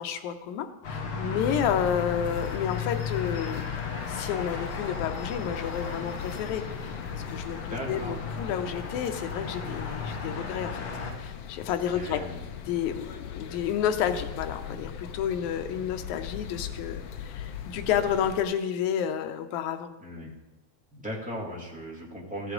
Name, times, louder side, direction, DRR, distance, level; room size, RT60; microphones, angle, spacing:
voice 1, 0.0-3.6 4.1-6.9 7.3-10.8 11.2-12.2 12.6-19.9, left 9 dB, 90° left, 7 dB, 2.1 m, -30 dB
sound 1, 0.8-11.1, left 5 dB, 55° left, 1.8 m, -35 dB
sound 2, 1.4-18.4, left 8 dB, 70° left, 1.6 m, -40 dB
voice 2, 7.6-8.2 11.9-12.4 20.0-20.3 20.9-22.5, equal, 5° right, -5 dB, 1.6 m, -37 dB
14.5 x 8.0 x 3.8 m, 1.1 s
omnidirectional pair, 3.3 m